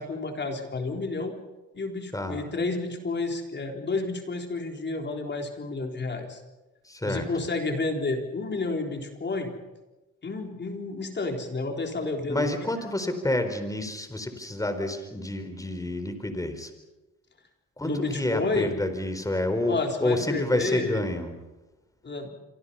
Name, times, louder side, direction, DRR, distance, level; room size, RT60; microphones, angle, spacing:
voice 1, 0.0-1.3 1.7-6.4 7.0-9.5 10.2-12.7 17.8-18.7 19.7-21.1 22.0-22.3, left 3 dB, 35° left, 3 dB, 4.1 m, -30 dB
voice 2, 6.9-7.3 12.3-16.7 17.8-19.8 20.0-21.3, left 1 dB, 10° left, 8 dB, 4.3 m, -29 dB
27.5 x 25.0 x 5.7 m, 1.1 s
cardioid pair, 90°, 30 cm